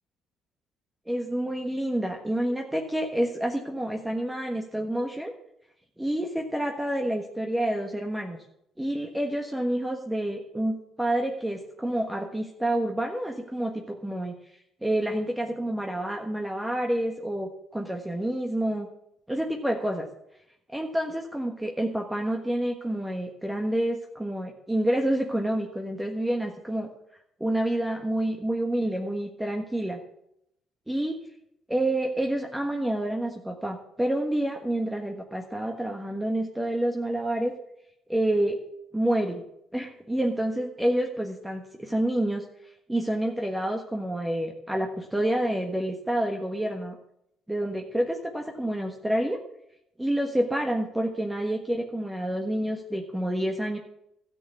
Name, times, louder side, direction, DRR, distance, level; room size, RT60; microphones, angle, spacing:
voice 1, 1.1-5.3 6.0-8.4 8.8-14.3 14.8-18.9 19.3-20.1 20.7-26.9 27.4-30.0 30.9-31.2 31.7-37.5 38.1-38.6 38.9-39.4 39.7-42.4 42.9-47.0 47.5-49.4 50.0-53.8, right 1 dB, 10° right, 2 dB, 1.4 m, -28 dB
13.0 x 6.7 x 8.3 m, 0.80 s
supercardioid pair, 75°, 0 cm